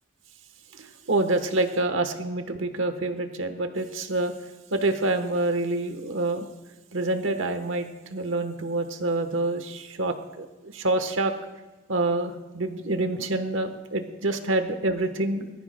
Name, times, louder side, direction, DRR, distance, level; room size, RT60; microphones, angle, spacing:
voice 1, 0.7-4.3 4.7-6.5 6.9-11.3 11.9-15.5, right 2 dB, 90° right, 8 dB, 1.1 m, -27 dB
19.5 x 14.0 x 2.2 m, 1.2 s
head